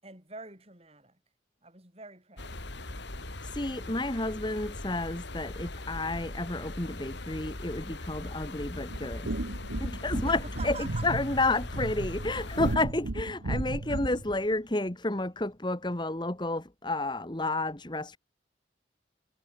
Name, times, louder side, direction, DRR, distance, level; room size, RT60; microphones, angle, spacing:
voice 1, 0.0-1.2 1.6-2.9 10.3-11.1, right 3 dB, 30° right, 7.9 m, -46 dB
sound 1, 2.4-12.8, left 2 dB, 70° left, 2.7 m, -40 dB
voice 2, 3.4-9.3 9.8-18.2, left 2 dB, 25° left, 1.4 m, -31 dB
sound 2, 8.9-14.3, right 2 dB, 85° right, 1.4 m, -34 dB
head